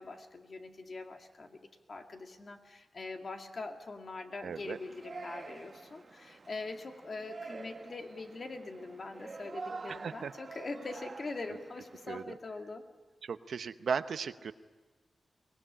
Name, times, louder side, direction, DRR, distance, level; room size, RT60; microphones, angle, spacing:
voice 1, 0.0-12.8, left 3 dB, 50° left, 4 dB, 2.2 m, -43 dB
voice 2, 4.4-4.8 9.9-10.3 12.1-12.3 13.2-14.5, right 6 dB, 80° right, 11 dB, 0.8 m, -36 dB
Yell, 4.5-12.2, right 4 dB, 45° right, 1.1 m, -47 dB
23.5 x 19.0 x 10.0 m, 1.3 s
wide cardioid pair, 110°, 0 cm